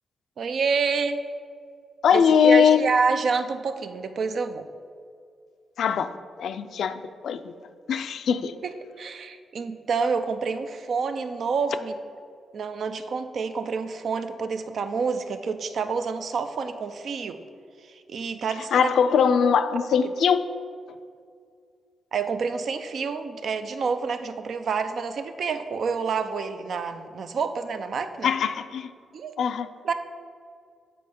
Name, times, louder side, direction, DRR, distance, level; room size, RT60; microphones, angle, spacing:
voice 1, 0.4-1.2 2.1-4.7 8.6-11.9 12.5-17.4 17.8-18.9 22.1-28.3 29.1-29.4 29.8-29.9, right 5 dB, 65° right, 9 dB, 0.5 m, -28 dB
voice 2, 2.0-2.8 5.8-6.1 6.4-7.5 7.9-8.5 18.7-20.5 28.2-28.9 29.4-29.7, left 7 dB, 75° left, 11 dB, 0.4 m, -21 dB
7.6 x 4.2 x 5.2 m, 2.2 s
cardioid pair, 65°, 0 cm